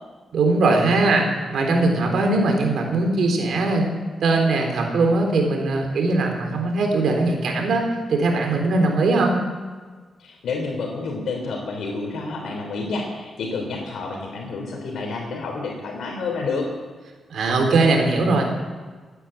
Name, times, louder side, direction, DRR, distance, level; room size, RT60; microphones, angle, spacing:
voice 1, 0.3-3.9 4.2-9.4 17.3-18.4, right 3 dB, 75° right, 2 dB, 3.8 m, -20 dB
voice 2, 10.2-16.7, left 3 dB, 80° left, 1 dB, 3.2 m, -29 dB
16.5 x 10.0 x 7.9 m, 1.4 s
cardioid pair, 115°, 0 cm